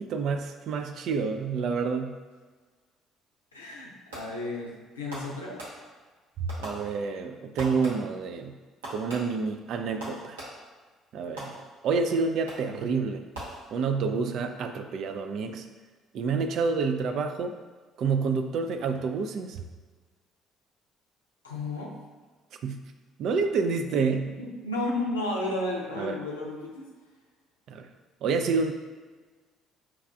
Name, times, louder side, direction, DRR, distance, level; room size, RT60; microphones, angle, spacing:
voice 1, 0.0-2.2 6.4-8.6 8.9-10.4 11.1-13.2 13.7-15.6 16.1-17.6 18.0-19.6 22.6-22.8 23.2-24.4 26.0-26.2 27.7-27.9 28.2-28.7, right 5 dB, 55° right, 6 dB, 0.3 m, -28 dB
voice 2, 3.5-5.6 21.4-21.9 24.4-26.9, left 2 dB, 85° left, -2 dB, 0.5 m, -33 dB
Fireworks, 4.1-4.5 5.1-6.1 6.5-7.3 7.6-8.3 8.8-10.8 11.4-12.0 12.5-12.9 13.3-14.1, right 1 dB, 80° right, 0.9 m, -42 dB
5.9 x 2.3 x 2.3 m, 1.4 s
figure-of-eight pair, 50°, 0 cm